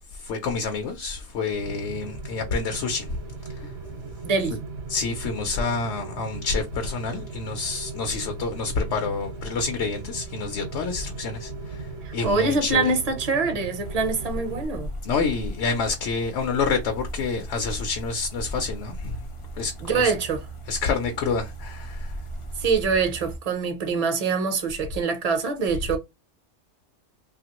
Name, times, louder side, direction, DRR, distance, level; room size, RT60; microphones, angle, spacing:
voice 1, 0.1-3.2 3.5-3.7 4.9-12.9 15.0-19.2 19.6-20.1 20.7-22.2, left 4 dB, 70° left, 0.9 m, -28 dB
Rain, 1.5-14.7, right 3 dB, 65° right, 1.0 m, -38 dB
voice 2, 4.2-4.6 12.0-14.9 19.8-20.5 22.6-26.0, right 4 dB, 40° right, 0.7 m, -24 dB
sound 1, 13.8-23.4, right 1 dB, 45° left, 0.4 m, -37 dB
2.8 x 2.4 x 2.9 m
omnidirectional pair, 1.3 m